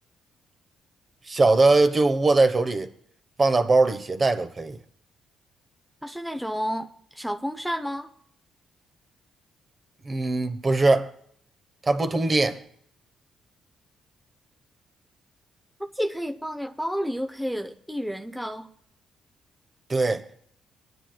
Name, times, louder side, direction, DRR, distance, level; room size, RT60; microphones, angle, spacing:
voice 1, 1.3-2.9 3.4-4.8 10.0-11.1 11.8-12.6 19.9-20.2, right 3 dB, 30° right, 1.0 m, -21 dB
voice 2, 6.0-8.1 15.8-18.7, equal, ahead, 0.7 m, -31 dB
24.0 x 9.9 x 2.3 m
cardioid pair, 90°, 0 cm